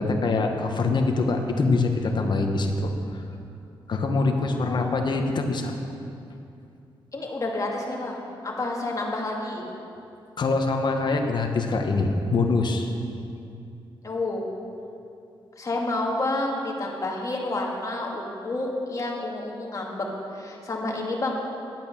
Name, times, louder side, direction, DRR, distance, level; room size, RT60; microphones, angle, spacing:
voice 1, 0.0-3.2 3.9-5.7 10.4-12.9, left 3 dB, 50° left, 4 dB, 1.2 m, -24 dB
voice 2, 4.5-4.9 7.1-8.2 8.4-9.6 14.0-14.4 15.6-21.5, left 2 dB, 35° left, -1 dB, 2.1 m, -29 dB
11.0 x 8.5 x 6.3 m, 2.6 s
cardioid pair, 85°, 9 cm